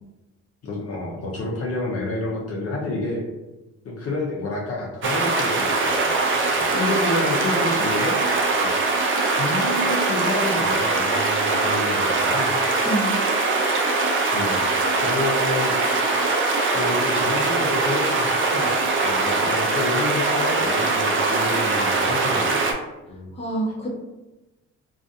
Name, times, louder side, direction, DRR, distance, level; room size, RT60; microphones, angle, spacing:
voice 1, 0.6-3.2 3.8-8.2 8.6-8.7 9.2-12.6 14.3-16.1 16.7-18.8 19.0-22.6 23.1-23.3, left 2 dB, 55° left, -3 dB, 0.6 m, -29 dB
sound 1, 5.0-22.7, right 3 dB, 40° right, 0.5 m, -22 dB
voice 2, 23.3-23.9, right 1 dB, 20° left, -3 dB, 0.8 m, -26 dB
2.4 x 2.3 x 2.5 m, 1.0 s
cardioid pair, 90°, 30 cm